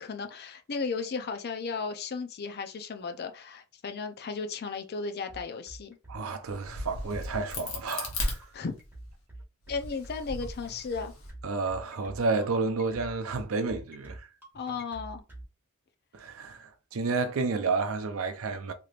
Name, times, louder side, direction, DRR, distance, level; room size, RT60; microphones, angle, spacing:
voice 1, 0.0-6.0 8.5-8.7 9.7-11.1 14.5-15.2, left 4 dB, 50° left, 0.5 m, -35 dB
sound 1, 5.3-15.4, right 1 dB, 10° right, 1.3 m, -46 dB
voice 2, 6.1-8.4 11.4-14.3 16.1-18.7, right 4 dB, 65° right, 0.5 m, -31 dB
Crack, 6.5-9.1 9.6-11.3, left 2 dB, 65° left, 1.0 m, -36 dB
3.3 x 2.9 x 2.4 m
head